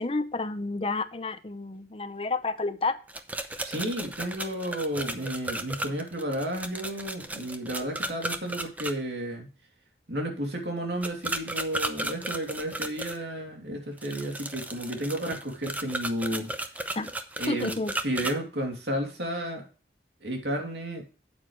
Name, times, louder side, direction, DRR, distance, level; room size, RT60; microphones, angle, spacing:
voice 1, 0.0-3.0 17.0-17.1 17.5-17.9, left 3 dB, 30° left, 11 dB, 0.7 m, -30 dB
sound 1, 3.1-8.9 11.0-13.2 14.0-18.3, right 1 dB, 10° right, 0.7 m, -34 dB
voice 2, 3.6-9.5 10.1-16.5 17.4-17.8 18.0-19.6 20.2-21.1, right 1 dB, 80° right, 2 dB, 2.8 m, -32 dB
8.8 x 8.7 x 3.2 m, 0.35 s
head